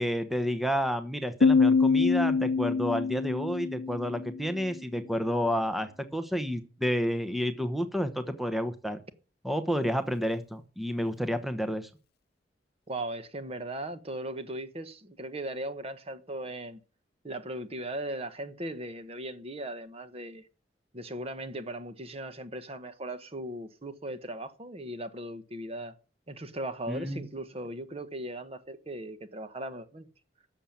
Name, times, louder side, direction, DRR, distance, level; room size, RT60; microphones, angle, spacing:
voice 1, 0.0-9.0 9.4-11.9 26.9-27.2, equal, ahead, 0.9 m, -30 dB
Piano, 1.4-4.8, left 4 dB, 60° left, 0.6 m, -25 dB
voice 2, 12.9-16.8 17.2-20.5 20.9-25.9 26.3-30.1, right 1 dB, 35° right, 1.2 m, -38 dB
12.0 x 7.2 x 8.6 m
head